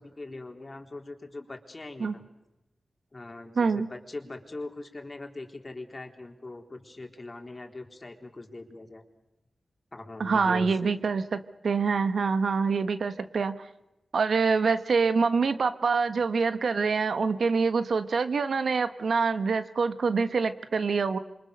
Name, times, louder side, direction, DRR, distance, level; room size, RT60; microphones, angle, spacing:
voice 1, 0.0-2.2 3.1-9.0 9.9-10.8, left 2 dB, 35° left, 4 dB, 3.9 m, -41 dB
voice 2, 3.6-3.9 10.2-13.6 14.1-21.2, right 5 dB, 80° right, 10 dB, 1.4 m, -25 dB
27.5 x 24.5 x 6.6 m, 0.96 s
cardioid pair, 65°, 0 cm